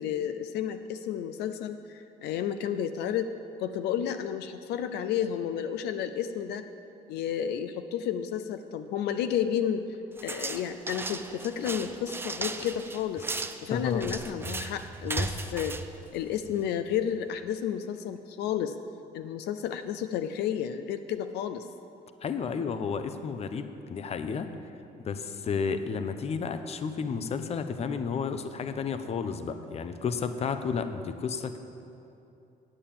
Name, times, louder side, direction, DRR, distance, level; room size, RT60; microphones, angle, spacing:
voice 1, 0.0-6.7 7.1-9.9 10.2-13.3 13.6-15.8 16.1-18.8 19.1-21.7, left 9 dB, 80° left, 9 dB, 0.5 m, -31 dB
sound 1, 10.2-16.7, right 3 dB, 15° right, 0.5 m, -36 dB
voice 2, 13.7-14.1 22.2-24.5 25.0-31.6, left 5 dB, 40° left, 9 dB, 0.7 m, -32 dB
8.9 x 8.6 x 7.4 m, 2.7 s
cardioid pair, 110°, 17 cm